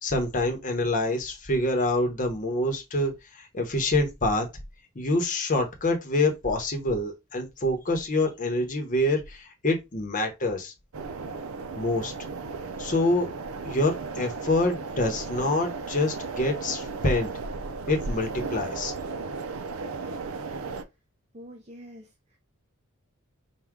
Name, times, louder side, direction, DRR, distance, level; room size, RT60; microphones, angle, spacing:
voice 1, 0.0-4.5 4.9-10.7 11.8-12.1 12.8-13.3 13.6-17.3 17.9-18.9, left 2 dB, 35° left, 0.9 m, -26 dB
sound 1, 10.9-20.8, right 4 dB, 75° right, 0.5 m, -35 dB
voice 2, 21.3-22.4, equal, 30° right, 0.7 m, -46 dB
4.6 x 2.3 x 3.6 m
head